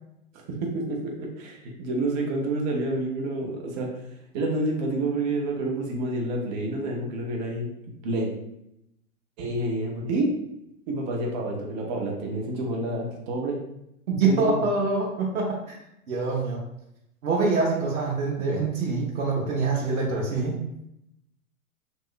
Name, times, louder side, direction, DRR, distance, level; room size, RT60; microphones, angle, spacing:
voice 1, 0.6-3.9 4.3-7.7 8.0-8.3 9.4-10.3 10.9-13.6 14.2-14.7, right 2 dB, 30° right, 0 dB, 0.7 m, -28 dB
voice 2, 14.1-15.7 16.1-16.6 17.2-20.6, right 3 dB, 60° right, -3 dB, 0.8 m, -25 dB
3.0 x 2.7 x 2.4 m, 0.80 s
figure-of-eight pair, 110°, 43 cm